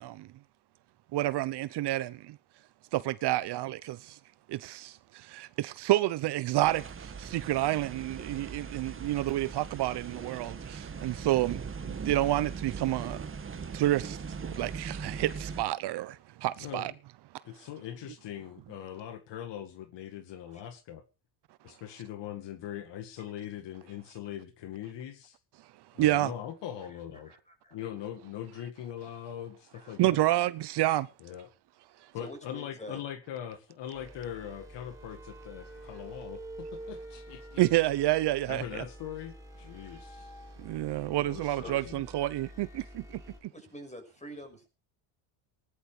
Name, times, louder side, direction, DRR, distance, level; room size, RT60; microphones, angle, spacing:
voice 1, 1.1-2.1 2.9-4.0 4.6-4.9 5.3-6.8 7.3-10.5 11.0-11.6 12.1-13.2 13.7-14.2 14.6-16.1 16.4-16.9 26.0-26.3 30.0-31.1 37.6-38.8 40.7-42.8, right 15 dB, 55° right, 0.9 m, -28 dB
sound 1, 6.6-15.6, right 5 dB, 25° right, 1.9 m, -40 dB
voice 2, 17.4-21.0 21.6-25.4 25.9-27.3 27.7-30.3 31.2-31.5 32.1-37.6 38.5-40.3 41.2-42.0, left 10 dB, 60° left, 2.1 m, -41 dB
voice 3, 27.2-27.8 29.7-29.9 32.1-33.0 41.6-41.9 43.5-44.7, equal, 15° left, 6.2 m, -46 dB
sound 2, 33.9-43.4, right 1 dB, 5° right, 6.3 m, -47 dB
18.5 x 11.0 x 4.9 m
cardioid pair, 110°, 49 cm